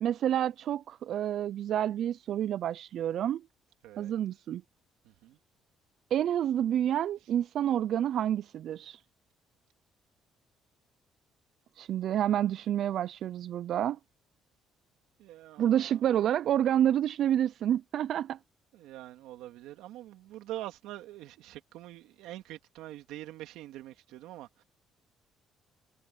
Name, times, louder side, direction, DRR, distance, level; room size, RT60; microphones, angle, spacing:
voice 1, 0.0-3.4 4.0-4.6 6.1-9.0 11.8-14.0 15.6-18.4, right 10 dB, 65° right, 0.4 m, -28 dB
voice 2, 5.0-5.4 15.2-16.0 18.7-24.6, right 15 dB, 90° right, 2.7 m, -44 dB
cardioid pair, 105°, 0 cm